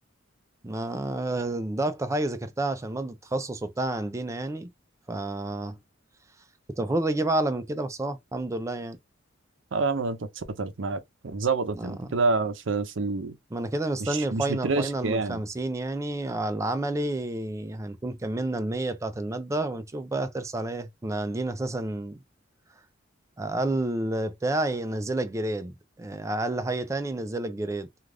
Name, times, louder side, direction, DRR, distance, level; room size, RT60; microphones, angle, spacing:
voice 1, 0.6-4.7 5.1-5.8 6.8-9.0 11.8-12.2 13.5-22.2 23.4-27.9, right 2 dB, 15° right, 0.4 m, -30 dB
voice 2, 9.7-13.3 14.0-15.4, right 3 dB, 70° right, 0.6 m, -28 dB
2.4 x 2.4 x 3.3 m
head